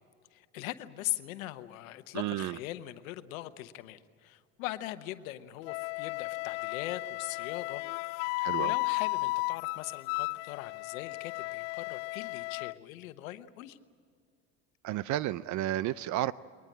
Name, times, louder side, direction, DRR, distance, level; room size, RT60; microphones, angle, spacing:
voice 1, 0.3-13.8, left 15 dB, 80° left, 12 dB, 1.1 m, -41 dB
voice 2, 2.1-2.6 8.4-8.8 14.8-16.3, right 14 dB, 45° right, 18 dB, 0.5 m, -32 dB
Wind instrument woodwind instrument, 5.6-12.7, left 27 dB, 65° left, 0.5 m, -34 dB
22.0 x 19.5 x 8.7 m, 2.1 s
hypercardioid pair, 85°, 40 cm